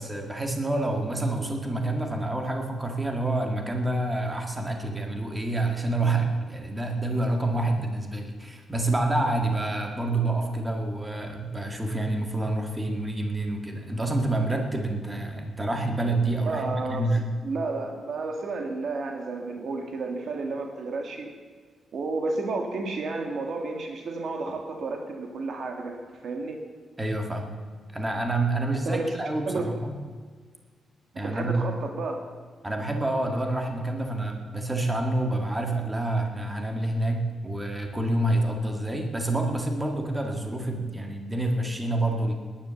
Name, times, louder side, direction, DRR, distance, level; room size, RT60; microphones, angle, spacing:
voice 1, 0.0-17.3 27.0-27.5 27.9-29.9 31.2-31.7 32.6-42.3, right 2 dB, 10° right, 3 dB, 1.8 m, -28 dB
voice 2, 16.5-17.1 17.4-21.3 21.9-26.6 28.9-29.1 29.5-29.7 31.1-32.2, right 3 dB, 55° right, 3 dB, 1.9 m, -31 dB
19.0 x 10.5 x 7.0 m, 1.5 s
wide cardioid pair, 165°, 0 cm